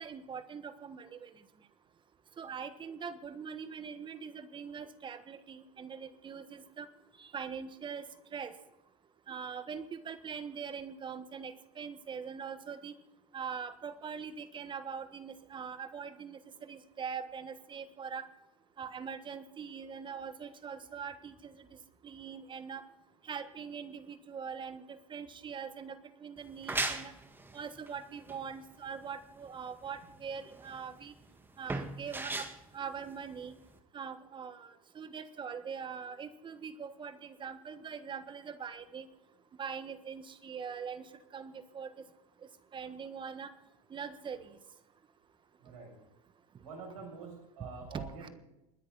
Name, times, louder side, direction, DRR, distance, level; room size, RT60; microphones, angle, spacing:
voice 1, 0.0-1.3 2.4-6.9 7.2-8.1 8.3-8.5 9.3-12.9 13.3-18.3 18.8-21.6 22.0-22.8 23.2-27.1 27.5-31.1 31.6-32.5 32.7-33.6 33.9-39.1 39.6-41.9 42.7-43.5 43.9-44.5 47.6-48.3, right 6 dB, 25° right, 11 dB, 1.4 m, -42 dB
sound 1, 26.4-33.8, right 2 dB, 10° right, 1.8 m, -39 dB
voice 2, 45.6-45.9 46.6-48.3, right 4 dB, 75° right, 1 dB, 7.4 m, -46 dB
28.5 x 10.5 x 4.1 m, 0.91 s
hypercardioid pair, 90°, 18 cm